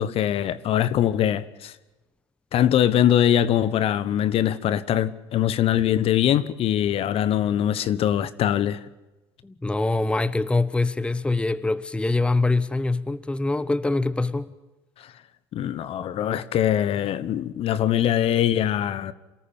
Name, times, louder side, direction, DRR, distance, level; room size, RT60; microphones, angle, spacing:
voice 1, 0.0-1.7 2.5-8.8 15.0-15.1 15.5-19.1, left 10 dB, 45° left, 1.3 m, -22 dB
voice 2, 9.4-14.5, left 2 dB, 10° left, 1.0 m, -24 dB
28.0 x 14.0 x 9.0 m
hypercardioid pair, 80°, 13 cm